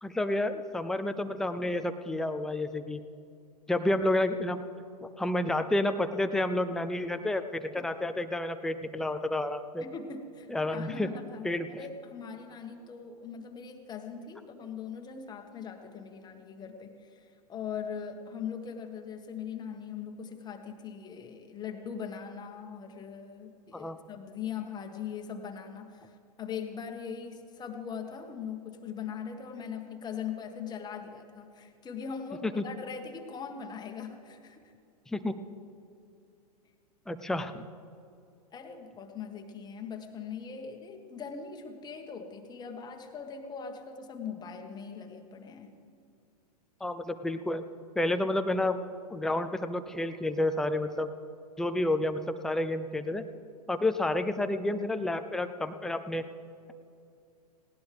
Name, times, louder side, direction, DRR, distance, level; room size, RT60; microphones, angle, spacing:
voice 1, 0.0-3.0 3.7-4.6 5.0-9.8 10.5-11.1 11.4-11.7 23.7-24.0 32.6-32.7 35.1-35.4 37.1-37.6 46.8-47.6 48.0-48.8 49.1-51.1 51.6-53.2 53.7-56.2, left 1 dB, ahead, 8 dB, 0.5 m, -30 dB
voice 2, 9.8-34.7 38.5-45.7, left 6 dB, 20° left, 4 dB, 1.5 m, -41 dB
19.0 x 17.5 x 3.5 m, 2.5 s
figure-of-eight pair, 100°, 21 cm